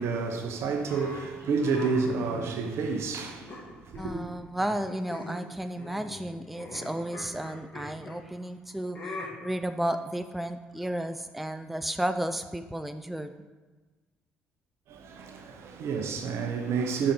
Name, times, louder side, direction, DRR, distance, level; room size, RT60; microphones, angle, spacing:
voice 1, 0.0-4.1 14.9-17.1, right 5 dB, 60° right, 0.7 m, -30 dB
sound 1, 0.9-3.0 3.5-4.3 4.6-4.8 5.1-5.5 5.8-8.2 8.9-9.3, left 1 dB, 40° left, 1.6 m, -41 dB
voice 2, 4.0-13.3, right 1 dB, 5° right, 0.4 m, -33 dB
5.1 x 4.9 x 4.3 m
hypercardioid pair, 50°, 5 cm